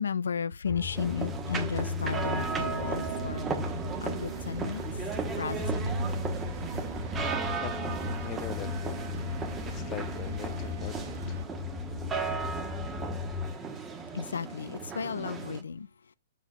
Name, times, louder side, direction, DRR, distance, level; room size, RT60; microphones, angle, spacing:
voice 1, 0.0-3.5 4.0-4.8 5.4-6.3 14.1-15.9, left 6 dB, 90° left, 0.4 m, -34 dB
sound 1, 0.6-13.5, left 4 dB, ahead, 1.7 m, -36 dB
sound 2, 1.0-15.6, right 5 dB, 15° right, 1.3 m, -36 dB
sound 3, 2.0-11.4, right 7 dB, 45° right, 1.9 m, -42 dB
voice 2, 7.5-7.9 8.2-9.3 9.6-11.4, left 16 dB, 30° left, 0.6 m, -42 dB
7.3 x 4.0 x 6.2 m
hypercardioid pair, 145°, 0 cm